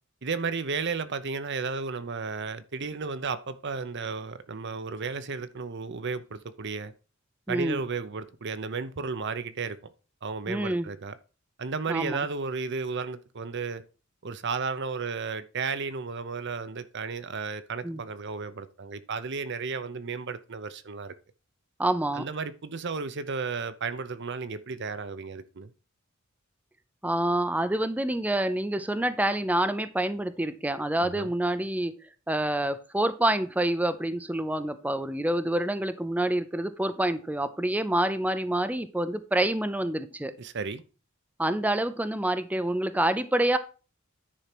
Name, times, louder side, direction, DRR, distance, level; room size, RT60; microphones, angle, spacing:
voice 1, 0.2-6.9 7.5-9.9 10.2-11.2 11.6-13.8 14.2-21.1 22.1-25.7 31.0-31.3 40.4-40.8, right 4 dB, 60° right, 0.8 m, -33 dB
voice 2, 7.5-7.8 10.5-10.9 11.9-12.2 17.8-18.0 21.8-22.2 27.0-31.9 32.3-40.3 41.4-43.6, right 1 dB, 10° right, 0.5 m, -27 dB
10.0 x 4.4 x 6.0 m
head